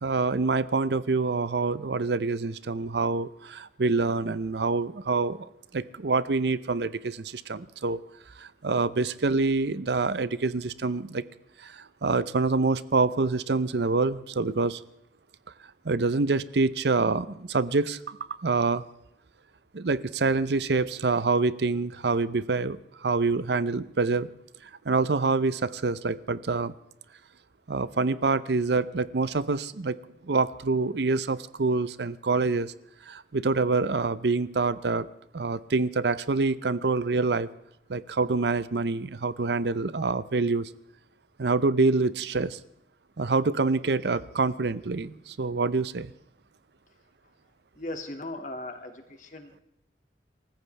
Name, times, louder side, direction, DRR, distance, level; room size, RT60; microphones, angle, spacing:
voice 1, 0.0-8.0 8.4-11.2 11.6-14.8 15.8-18.2 18.4-18.8 19.7-24.3 24.9-26.7 27.7-30.0 30.3-32.7 33.1-35.1 35.3-37.5 37.9-40.7 41.4-42.6 43.2-46.1, right 3 dB, 70° right, 16 dB, 0.6 m, -26 dB
voice 2, 47.7-49.6, left 2 dB, 45° left, 4 dB, 2.2 m, -38 dB
27.5 x 14.5 x 3.4 m, 0.81 s
head